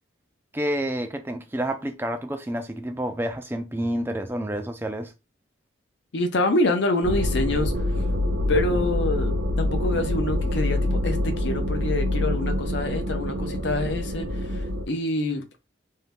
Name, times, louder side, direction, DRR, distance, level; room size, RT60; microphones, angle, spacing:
voice 1, 0.5-5.1, right 1 dB, 10° right, 0.4 m, -29 dB
voice 2, 6.1-7.7 8.5-15.4, left 2 dB, 70° left, 0.6 m, -26 dB
sound 1, 7.0-14.9, left 1 dB, 85° right, 0.6 m, -26 dB
2.7 x 2.2 x 3.3 m
head